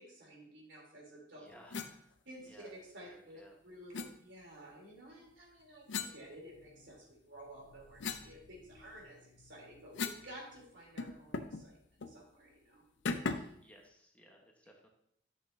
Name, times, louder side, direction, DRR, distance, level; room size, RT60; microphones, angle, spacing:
voice 1, 0.0-1.5 2.2-5.9 6.1-11.8 12.1-12.8 13.2-13.5, right 1 dB, 85° right, -3 dB, 3.4 m, -53 dB
voice 2, 1.3-2.1 2.4-3.5 13.6-14.9, equal, 10° left, 0 dB, 1.2 m, -60 dB
sound 1, 1.7-1.9 3.9-4.1 5.9-6.9 7.4-10.3 10.6-10.7 11.0-11.6 12.0-12.2 13.1-13.6, left 4 dB, 80° left, 0.6 m, -40 dB
11.0 x 6.4 x 2.7 m, 0.69 s
head